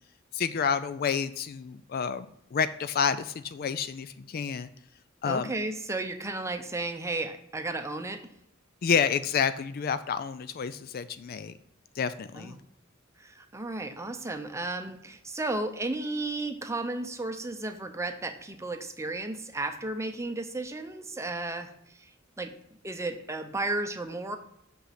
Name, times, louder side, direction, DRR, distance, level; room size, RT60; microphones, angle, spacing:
voice 1, 0.3-4.7 5.2-5.5 8.8-11.5 11.9-12.6, left 6 dB, 45° left, 13 dB, 0.4 m, -29 dB
voice 2, 5.2-8.2 12.4-12.6 13.2-22.1 22.4-22.5 22.8-24.4, right 2 dB, 15° right, 7 dB, 0.7 m, -34 dB
6.3 x 5.7 x 5.8 m, 0.75 s
head